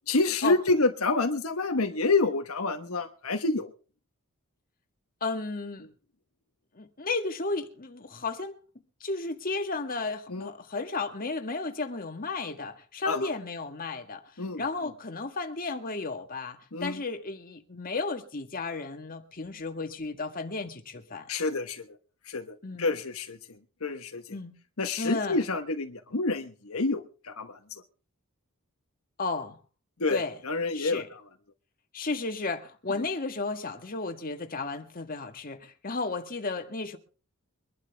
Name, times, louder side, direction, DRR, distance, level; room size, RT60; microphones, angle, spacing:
voice 1, 0.1-3.7 10.3-10.5 13.1-13.3 14.4-14.6 16.7-17.0 21.3-21.9 22.2-23.4 23.8-24.2 24.8-27.8 30.0-30.2 30.4-31.0 33.0-33.1, left 3 dB, 70° left, 1.2 m, -28 dB
voice 2, 5.2-5.9 6.7-8.5 9.0-21.3 22.6-22.9 24.3-24.6 25.0-25.4 29.2-29.6 30.1-30.4 30.7-31.1 31.9-37.0, left 3 dB, 40° left, 1.6 m, -33 dB
23.5 x 11.5 x 3.5 m
head